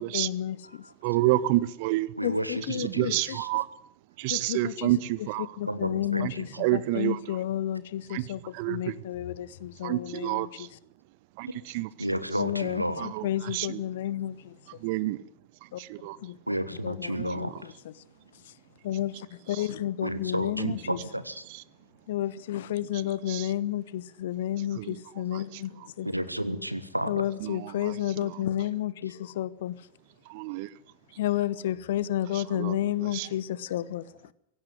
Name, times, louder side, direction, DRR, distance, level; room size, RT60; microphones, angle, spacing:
voice 1, 0.0-0.9 2.2-3.4 4.3-4.9 5.2-10.8 12.4-14.8 15.7-15.8 16.2-16.4 16.8-17.9 18.4-18.5 18.8-21.0 22.1-26.1 27.1-29.9 31.2-34.3, left 12 dB, 55° left, 1.0 m, -31 dB
voice 2, 1.0-2.1 2.8-3.7 4.2-5.5 6.2-6.3 6.6-7.2 8.1-8.2 8.5-9.0 9.8-10.7 11.4-11.5 11.7-11.9 13.0-13.2 13.5-13.8 14.8-15.2 15.8-16.2 17.2-17.3 20.6-20.7 23.3-23.5 24.8-25.0 27.4-27.9 30.3-30.7 32.5-32.8 33.1-33.3, right 17 dB, 45° right, 1.0 m, -28 dB
voice 3, 2.2-3.5 5.7-6.3 12.0-13.1 16.5-17.5 20.0-21.3 26.1-27.2, equal, 90° right, 1.4 m, -31 dB
17.5 x 16.5 x 9.7 m
figure-of-eight pair, 90°, 0 cm